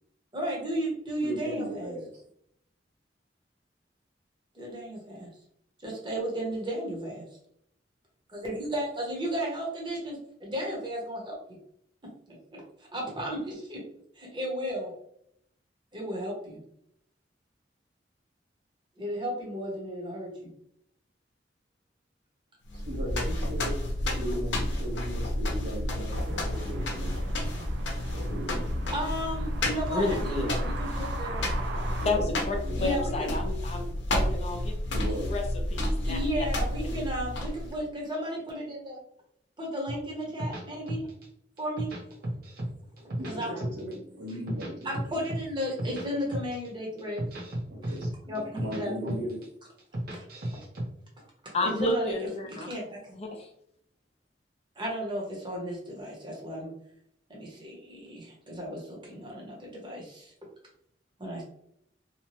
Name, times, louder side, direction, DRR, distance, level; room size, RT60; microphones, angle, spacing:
voice 1, 0.3-1.9 4.5-5.3 5.8-7.2 8.3-11.6 12.3-12.6 12.9-13.8 14.2-14.9 15.9-16.6 19.0-20.5 28.9-31.4 32.8-33.3 36.0-39.0 39.6-41.1 41.6-41.9 43.2-43.5 44.8-47.3 48.3-49.2 50.1-50.2 50.5-50.6 51.4-53.2 54.8-56.7 57.3-60.3 61.2-61.4, equal, 25° right, -2 dB, 0.9 m, -34 dB
voice 2, 1.2-2.2 22.7-27.1 28.1-28.9 32.0-32.3 32.6-32.8 34.9-35.3 36.9-37.0 43.2-45.3 47.7-49.4, equal, 75° right, -3 dB, 1.1 m, -37 dB
sound 1, 22.7-37.8, left 1 dB, 90° left, 0.6 m, -31 dB
sound 2, 26.1-32.1, right 3 dB, 90° right, 0.4 m, -40 dB
voice 3, 29.9-30.6 32.0-32.6 32.8-34.7 35.3-35.4 35.7-36.2 51.5-52.7 53.1-53.5, left 2 dB, 35° left, 2 dB, 0.5 m, -30 dB
sound 3, 39.9-41.2 41.6-42.7 43.0-43.9 44.3-46.1 46.3-46.7 47.0-48.8 49.1-49.4 49.8-50.8, right 1 dB, 55° right, 0.8 m, -34 dB
2.8 x 2.2 x 3.0 m, 0.73 s
head